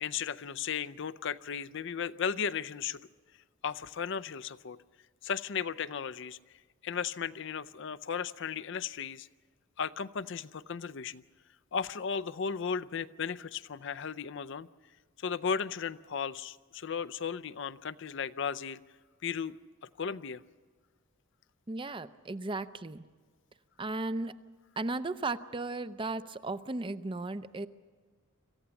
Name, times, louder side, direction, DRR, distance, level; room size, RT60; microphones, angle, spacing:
voice 1, 0.0-3.0 3.6-4.8 5.2-6.4 6.8-9.3 9.8-11.2 11.7-14.7 15.2-18.8 19.2-19.6 20.0-20.4, left 6 dB, 60° left, 14 dB, 0.5 m, -35 dB
voice 2, 21.7-23.0 23.8-24.4 24.8-27.7, right 2 dB, 25° right, 13 dB, 0.6 m, -35 dB
26.0 x 15.0 x 7.1 m, 1.5 s
head